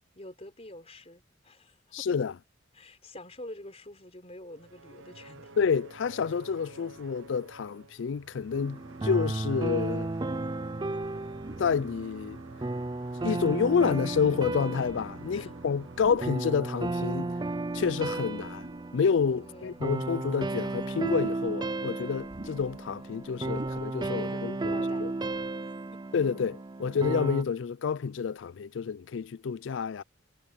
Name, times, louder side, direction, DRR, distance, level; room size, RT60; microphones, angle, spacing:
voice 1, 0.2-2.1 2.7-5.5 15.3-15.5 19.4-19.9 24.2-25.0 25.6-26.0, left 1 dB, 30° left, 4.2 m, -47 dB
voice 2, 1.9-2.3 5.6-10.1 11.6-12.4 13.2-17.3 17.7-18.7 18.9-25.1 26.1-30.0, left 6 dB, 70° left, 0.4 m, -29 dB
sound 1, 4.5-21.3, right 3 dB, 80° right, 0.8 m, -50 dB
sound 2, 8.5-27.4, right 2 dB, 20° right, 0.4 m, -34 dB
sound 3, 11.0-11.9 12.6-12.7 13.7-14.1 14.8-16.6 17.7-19.3 19.8-19.9 20.5-24.4 24.7-24.8 25.0-25.5, right 1 dB, 40° right, 2.5 m, -48 dB
head